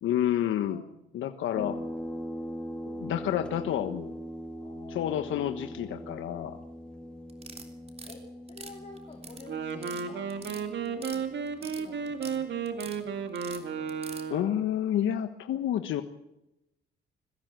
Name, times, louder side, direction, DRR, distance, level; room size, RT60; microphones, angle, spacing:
voice 1, 0.0-0.8 1.1-1.8 2.9-4.1 4.9-6.6 14.3-16.0, left 11 dB, 80° left, 7 dB, 1.3 m, -29 dB
voice 2, 0.7-1.2 4.6-5.1 5.7-6.0 8.0-8.2 8.5-11.3 11.6-13.1 13.3-13.6, left 3 dB, 30° left, -1 dB, 4.4 m, -51 dB
sound 1, 1.5-14.6, equal, 5° left, 2.6 m, -42 dB
sound 2, 7.3-8.2 8.5-9.4 9.7-10.0 10.3-11.2 11.5-12.4 12.7-13.0 13.4-14.2, right 4 dB, 30° right, 3.5 m, -44 dB
Wind instrument woodwind instrument, 9.5-14.6, right 6 dB, 65° right, 2.5 m, -34 dB
21.5 x 15.5 x 7.8 m, 0.87 s
cardioid pair, 90°, 20 cm